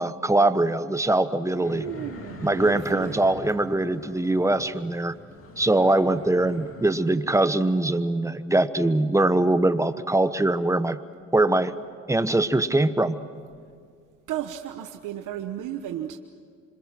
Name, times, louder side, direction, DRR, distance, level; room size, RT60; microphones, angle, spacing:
voice 1, 0.0-1.9 2.4-5.1 5.6-11.0 11.3-11.7 12.1-13.2, right 2 dB, 10° right, 12 dB, 1.2 m, -22 dB
sound 1, 1.6-7.2, left 2 dB, 45° left, 2.8 m, -43 dB
voice 2, 1.6-3.1 14.3-16.2, right 11 dB, 85° right, 6 dB, 1.2 m, -34 dB
27.0 x 26.5 x 6.1 m, 2.2 s
cardioid pair, 90°, 30 cm